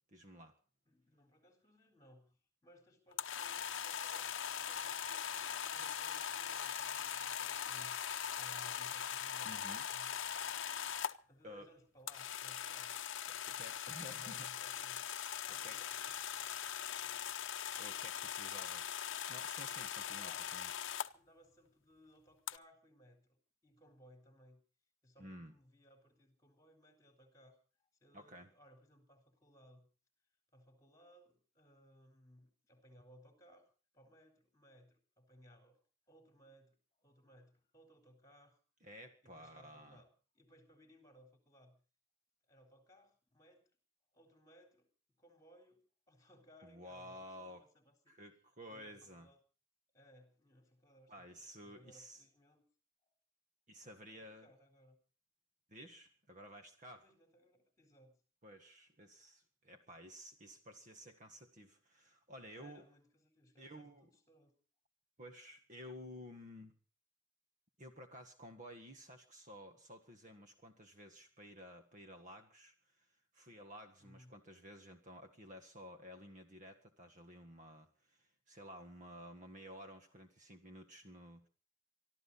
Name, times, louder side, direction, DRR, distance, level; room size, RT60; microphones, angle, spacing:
voice 1, 0.1-0.5 9.4-9.9 11.4-11.7 13.3-14.4 15.6-15.8 17.8-19.0 19.3-20.7 25.2-25.5 28.1-28.5 38.8-40.0 46.6-47.7 48.1-49.3 51.1-52.2 53.7-54.5 55.7-57.0 58.4-62.8 63.6-64.1 65.2-66.7 67.8-73.1 73.3-81.5, equal, 35° right, 6 dB, 1.6 m, -53 dB
voice 2, 0.9-8.0 8.3-10.1 11.3-13.0 13.3-13.6 14.1-15.1 15.5-16.6 17.0-17.3 20.0-24.6 25.0-27.6 28.0-29.9 30.5-33.6 33.9-35.8 36.1-38.6 39.2-40.1 40.3-41.8 42.5-43.6 44.1-44.9 45.2-45.8 46.1-48.1 48.7-49.4 49.9-52.6 53.0-53.1 53.8-55.0 57.0-58.2 62.5-64.5 74.0-74.3, equal, 15° left, 4 dB, 4.1 m, -64 dB
sound 1, 3.1-11.1 12.1-21.1 22.5-22.6, left 9 dB, 65° left, 0.8 m, -41 dB
24.5 x 13.5 x 4.1 m, 0.37 s
head